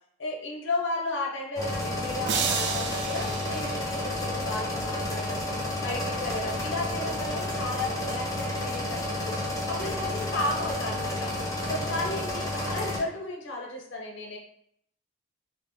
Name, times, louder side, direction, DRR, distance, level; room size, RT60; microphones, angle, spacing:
voice 1, 0.2-5.4 5.8-9.4 9.7-11.3 11.7-14.4, left 2 dB, 70° left, 0 dB, 0.6 m, -34 dB
sound 1, 1.6-13.0, left 1 dB, 15° left, 0.5 m, -31 dB
sound 2, 2.3-4.5, right 6 dB, 55° right, 0.3 m, -32 dB
3.2 x 2.0 x 2.6 m, 0.68 s
head